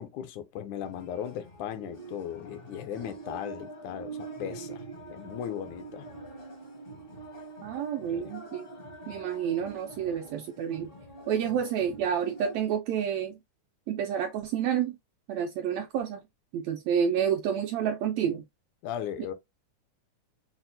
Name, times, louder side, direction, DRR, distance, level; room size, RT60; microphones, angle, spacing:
voice 1, 0.0-4.8 5.1-6.1 8.1-8.3 11.5-11.6 18.8-19.3, left 10 dB, 80° left, 2.0 m, -37 dB
sound 1, 0.8-12.6, right 2 dB, 55° left, 0.6 m, -44 dB
voice 2, 7.6-8.7 9.1-10.9 11.3-13.4 13.9-15.0 15.3-16.2 16.5-18.4, right 8 dB, 85° right, 1.5 m, -29 dB
6.1 x 2.1 x 2.6 m
omnidirectional pair, 3.5 m